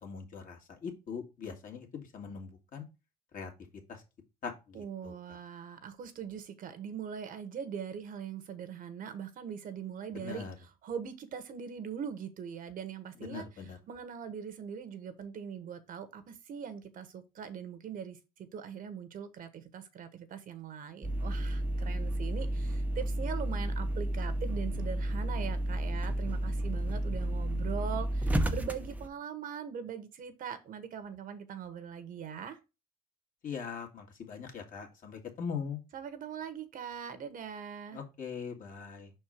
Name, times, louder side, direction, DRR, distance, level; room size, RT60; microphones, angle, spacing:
voice 1, 0.0-2.8 3.3-3.5 3.9-4.0 4.4-5.1 10.1-10.6 13.3-13.8 33.4-35.8 37.9-39.1, left 6 dB, 50° left, 2.1 m, -41 dB
voice 2, 4.7-32.6 35.9-38.0, right 7 dB, 55° right, 1.2 m, -41 dB
sound 1, 21.0-29.1, right 1 dB, 10° right, 0.7 m, -32 dB
5.5 x 4.5 x 5.0 m
cardioid pair, 110°, 17 cm